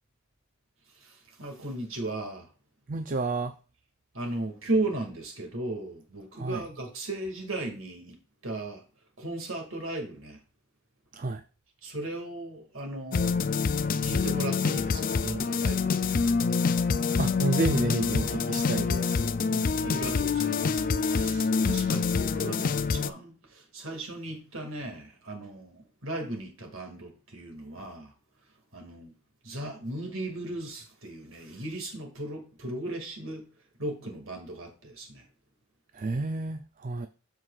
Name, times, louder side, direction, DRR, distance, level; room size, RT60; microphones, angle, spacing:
voice 1, 1.0-2.5 4.1-8.2 8.4-8.8 9.2-10.4 11.8-13.4 14.0-16.3 19.5-28.1 28.7-29.1 29.4-33.5 33.8-35.2, right 2 dB, 60° right, 2.2 m, -36 dB
voice 2, 2.9-3.5 6.4-6.6 11.1-11.4 17.2-19.3 35.9-37.1, right 3 dB, 35° right, 0.5 m, -30 dB
sound 1, 13.1-23.1, left 5 dB, 40° left, 0.4 m, -26 dB
13.0 x 4.8 x 2.4 m
head